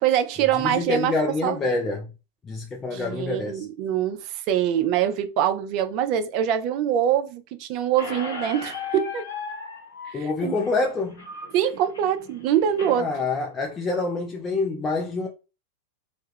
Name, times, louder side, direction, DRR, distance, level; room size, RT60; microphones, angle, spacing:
voice 1, 0.0-1.1 1.4-1.6 2.9-9.3 10.1-10.5 11.5-13.1, right 10 dB, 40° right, 0.4 m, -24 dB
voice 2, 0.5-2.1 2.4-3.6 10.1-11.3 13.0-15.3, left 3 dB, 20° left, 0.4 m, -26 dB
Squeak, 8.0-13.0, left 4 dB, 70° left, 0.8 m, -37 dB
2.2 x 2.0 x 3.3 m
figure-of-eight pair, 90°, 0 cm